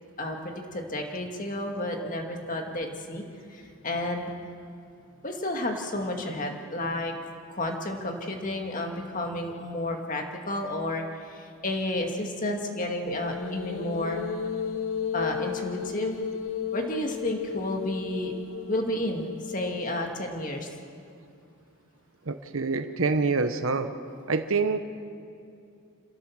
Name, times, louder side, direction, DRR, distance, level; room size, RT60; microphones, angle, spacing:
voice 1, 0.2-3.2 3.5-4.3 5.2-7.1 7.5-14.3 15.1-16.2 16.7-18.3 18.7-20.7, left 1 dB, 35° left, 2 dB, 2.1 m, -31 dB
sound 1, 13.1-20.5, left 7 dB, 70° left, 0.8 m, -34 dB
voice 2, 22.3-23.9 24.3-24.8, right 4 dB, 70° right, 8 dB, 0.9 m, -26 dB
27.5 x 15.5 x 7.2 m, 2.4 s
head